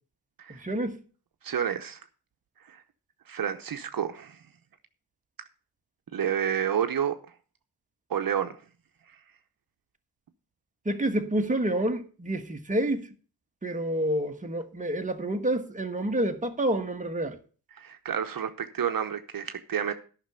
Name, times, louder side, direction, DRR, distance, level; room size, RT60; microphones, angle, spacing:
voice 1, 0.5-1.0 10.8-13.1 13.6-17.4, right 1 dB, 20° right, 1.3 m, -28 dB
voice 2, 1.4-2.0 2.6-2.8 3.3-4.4 6.1-7.2 8.1-8.6 17.7-19.9, right 9 dB, 60° right, 0.9 m, -29 dB
10.0 x 6.0 x 6.8 m
cardioid pair, 80°, 38 cm